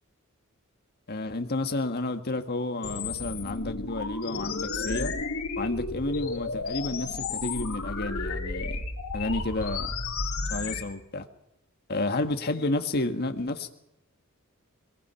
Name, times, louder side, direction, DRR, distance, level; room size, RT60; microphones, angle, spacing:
voice 1, 1.1-5.1 5.6-8.8 9.1-9.9 10.5-11.3 11.9-13.7, left 2 dB, 50° left, 1.8 m, -31 dB
sound 1, 2.8-10.8, left 3 dB, 85° left, 3.4 m, -32 dB
22.5 x 22.0 x 5.8 m
head